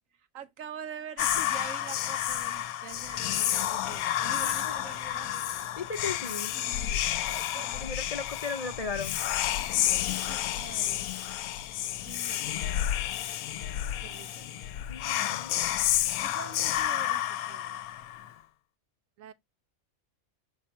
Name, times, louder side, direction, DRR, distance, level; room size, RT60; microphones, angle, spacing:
voice 1, 0.2-5.3 6.9-7.8 9.9-11.1 12.0-12.7 14.0-14.5 16.2-17.8 19.2-19.3, right 7 dB, 70° right, 1.2 m, -45 dB
Whispering, 1.2-18.3, left 12 dB, 85° left, 1.1 m, -30 dB
sound 1, 2.9-14.7, left 3 dB, 25° left, 1.5 m, -56 dB
voice 2, 4.4-4.7 5.8-6.5 7.8-9.2 14.9-15.6, left 4 dB, 45° left, 0.5 m, -36 dB
7.1 x 3.7 x 4.3 m
omnidirectional pair, 1.5 m